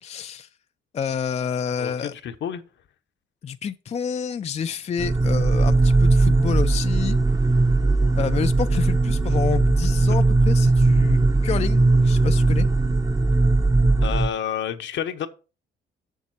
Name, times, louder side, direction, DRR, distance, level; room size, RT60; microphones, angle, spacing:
voice 1, 0.0-0.5 0.9-2.1 3.4-7.2 8.2-12.7, left 7 dB, 35° left, 0.4 m, -29 dB
voice 2, 2.2-2.6 14.0-15.3, left 9 dB, 65° left, 0.9 m, -29 dB
sound 1, 5.0-14.3, right 2 dB, 20° right, 0.8 m, -19 dB
7.2 x 6.7 x 4.4 m
cardioid pair, 90°, 20 cm